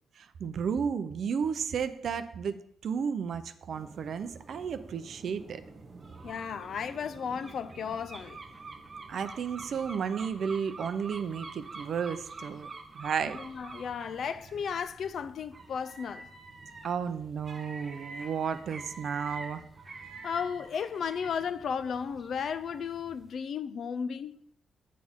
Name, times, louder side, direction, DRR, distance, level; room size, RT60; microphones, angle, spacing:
voice 1, 0.2-5.6 9.1-12.7 12.9-13.4 16.8-19.6, right 6 dB, 55° right, 0.6 m, -33 dB
sound 1, 3.7-23.3, right 3 dB, 25° right, 1.1 m, -47 dB
voice 2, 6.2-8.4 13.3-16.3 20.2-24.4, left 7 dB, 55° left, 0.4 m, -34 dB
8.5 x 8.4 x 3.7 m
cardioid pair, 150°, 0 cm